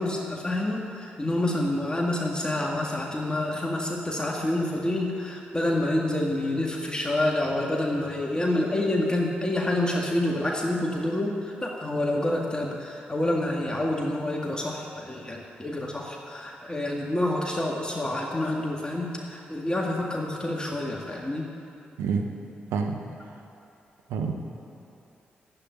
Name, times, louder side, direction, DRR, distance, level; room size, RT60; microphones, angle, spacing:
voice 1, 0.0-21.5, left 1 dB, 20° left, -1 dB, 1.9 m, -28 dB
voice 2, 22.0-22.2 22.7-23.0 24.1-24.3, right 5 dB, 80° right, 3 dB, 1.0 m, -27 dB
11.5 x 8.6 x 9.3 m, 2.8 s
hypercardioid pair, 40°, 4 cm